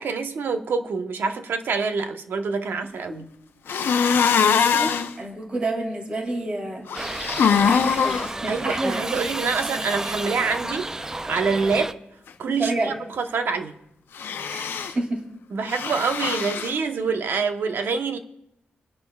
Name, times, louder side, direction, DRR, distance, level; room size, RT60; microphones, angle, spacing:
voice 1, 0.0-3.3 8.5-12.0 12.4-13.7 15.5-18.2, right 5 dB, 70° right, 1.0 m, -26 dB
sound 1, 3.7-5.1 6.9-8.3 14.2-14.9 15.7-16.7, left 6 dB, 80° left, 0.7 m, -22 dB
voice 2, 4.4-6.9 7.7-9.0 9.6-10.1 12.5-13.0 14.5-15.3, right 2 dB, 30° right, 2.5 m, -29 dB
Shout / Livestock farm animals working animals, 6.9-11.9, right 2 dB, 15° right, 0.4 m, -31 dB
30.0 x 10.5 x 2.4 m
wide cardioid pair, 145°, 4 cm